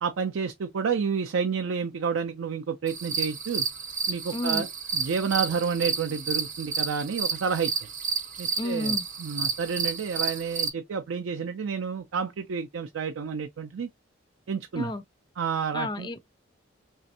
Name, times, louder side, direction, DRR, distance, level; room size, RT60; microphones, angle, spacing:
voice 1, 0.0-3.6 4.1-4.7 4.9-7.7 8.4-8.9 9.2-13.9 14.5-14.9 15.4-16.1, right 6 dB, 85° right, 0.4 m, -30 dB
sound 1, 2.9-10.7, right 5 dB, 40° right, 0.7 m, -31 dB
voice 2, 4.3-4.6 8.6-9.0 14.8-15.0 15.7-16.3, left 2 dB, 20° left, 0.3 m, -31 dB
3.3 x 3.1 x 2.7 m
head